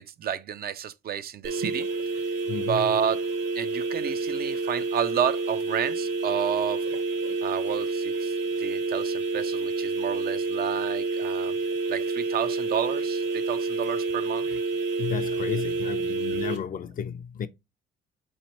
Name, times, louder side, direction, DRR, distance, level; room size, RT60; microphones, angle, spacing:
voice 1, 0.0-1.9 2.6-3.2 3.5-6.8 7.4-11.6 11.9-14.5, right 8 dB, 50° right, 0.4 m, -30 dB
sound 1, 1.4-16.6, right 3 dB, 70° right, 1.0 m, -29 dB
voice 2, 2.5-2.9 15.0-17.5, left 8 dB, 45° left, 0.4 m, -33 dB
4.2 x 3.1 x 2.8 m
cardioid pair, 90°, 20 cm